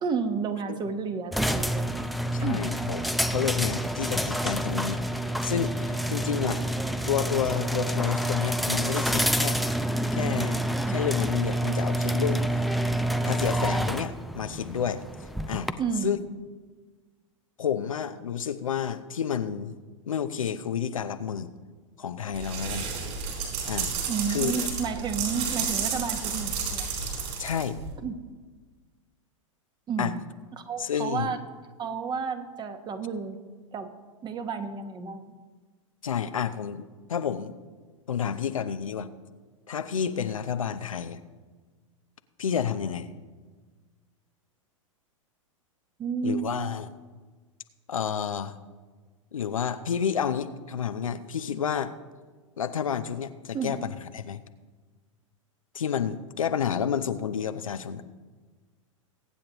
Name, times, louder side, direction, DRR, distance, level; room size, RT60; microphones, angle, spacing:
voice 1, 0.0-2.1 2.4-2.7 15.8-16.2 24.1-26.9 28.0-28.1 29.9-30.2 30.5-31.4 31.8-33.4 33.7-33.9 34.2-35.3 46.0-46.6 53.5-53.8, right 5 dB, 25° right, 8 dB, 1.2 m, -31 dB
sound 1, 1.3-15.7, right 1 dB, ahead, 0.5 m, -28 dB
voice 2, 2.3-3.0 3.3-5.0 5.4-6.6 7.1-9.6 10.1-10.6 10.9-12.7 13.2-15.0 15.5-15.7 16.0-16.2 17.6-19.7 20.1-21.5 22.0-22.9 23.7-23.9 24.3-24.7 27.4-27.8 30.0-30.1 30.8-31.3 36.0-37.5 38.1-39.1 39.7-41.2 42.4-43.1 46.2-46.9 47.9-48.5 49.3-51.9 52.6-54.4 55.7-58.0, left 8 dB, 80° left, 10 dB, 0.7 m, -30 dB
sound 2, 22.3-27.9, right 6 dB, 45° right, 4.6 m, -31 dB
23.0 x 8.7 x 3.0 m, 1.4 s
hypercardioid pair, 100°, 17 cm